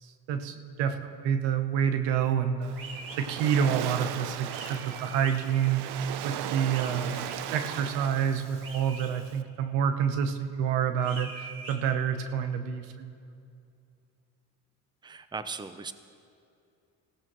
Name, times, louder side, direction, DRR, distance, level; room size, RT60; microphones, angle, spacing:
voice 1, 0.0-2.7 3.2-6.0 6.2-7.3 7.5-13.1, right 8 dB, 85° right, 8 dB, 1.0 m, -28 dB
Waves surf, 2.6-9.4, right 11 dB, 70° right, 0.7 m, -37 dB
sound 1, 2.7-3.2 4.5-5.3 6.7-7.4 8.6-9.1 11.0-11.8, right 3 dB, 50° right, 2.9 m, -43 dB
voice 2, 15.0-15.9, right 4 dB, 10° right, 11 dB, 0.6 m, -38 dB
20.0 x 16.0 x 3.1 m, 2.5 s
supercardioid pair, 75°, 42 cm